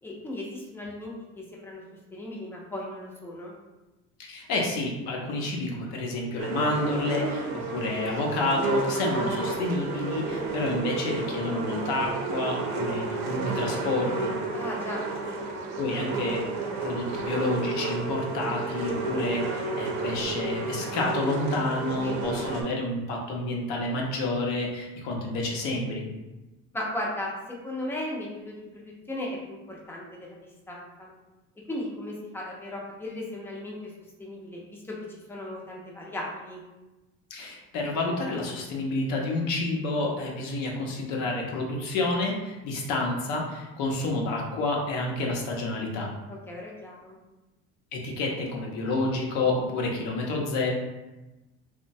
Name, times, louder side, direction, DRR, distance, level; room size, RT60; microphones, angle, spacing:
voice 1, 0.0-1.8 2.1-3.5 14.5-15.1 22.0-22.2 26.7-27.3 27.6-30.4 30.7-31.1 31.7-33.9 34.2-36.6 46.3-47.2, left 1 dB, 10° left, -3 dB, 0.5 m, -36 dB
voice 2, 4.2-14.3 15.8-16.4 16.8-26.0 37.3-46.1 47.9-50.7, left 2 dB, 75° left, -1 dB, 0.7 m, -29 dB
sound 1, 6.4-22.6, right 3 dB, 65° right, 0.6 m, -31 dB
3.0 x 2.1 x 2.6 m, 1.1 s
cardioid pair, 140°, 29 cm